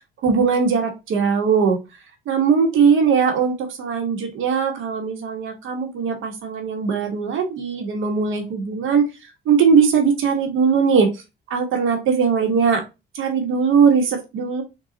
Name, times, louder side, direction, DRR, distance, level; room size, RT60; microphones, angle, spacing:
voice 1, 0.2-1.8 2.3-9.1 9.5-11.1 11.5-12.8 13.1-14.6, right 6 dB, 85° right, 3 dB, 1.1 m, -19 dB
3.8 x 2.3 x 3.8 m, 0.26 s
cardioid pair, 90°, 20 cm